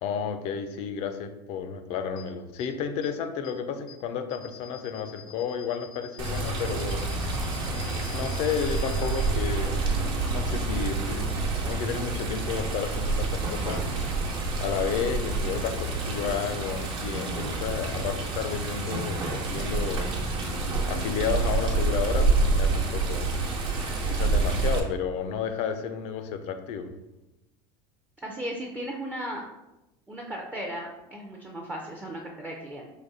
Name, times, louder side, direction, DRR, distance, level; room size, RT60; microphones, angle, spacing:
voice 1, 0.0-7.1 8.0-13.9 14.6-20.2 20.9-23.4 24.1-26.9, left 7 dB, 55° left, 8 dB, 0.5 m, -32 dB
sound 1, 2.2-2.3 2.6-2.7 3.0-3.1 3.4-3.5 3.9-4.0 4.3-9.3, left 11 dB, 90° left, 1.1 m, -46 dB
Water, 6.2-24.8, right 3 dB, 40° right, 0.8 m, -28 dB
voice 2, 28.2-29.4 30.1-32.8, right 1 dB, 10° right, -1 dB, 0.6 m, -36 dB
5.0 x 2.2 x 3.9 m, 0.95 s
supercardioid pair, 125°, 13 cm